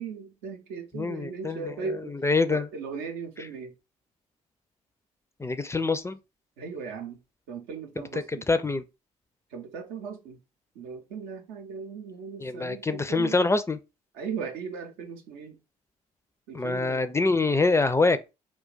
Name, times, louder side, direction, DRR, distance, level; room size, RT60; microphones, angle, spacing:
voice 1, 0.0-2.1 2.5-3.7 6.6-7.2 7.5-8.5 9.5-10.4 10.8-13.4 14.1-15.6 16.5-17.1, right 5 dB, 75° right, 0.6 m, -37 dB
voice 2, 0.9-1.7 2.1-2.7 5.4-6.2 8.5-8.8 12.4-13.8 16.5-18.2, left 3 dB, 15° left, 0.4 m, -25 dB
2.3 x 2.2 x 3.8 m
hypercardioid pair, 45°, 17 cm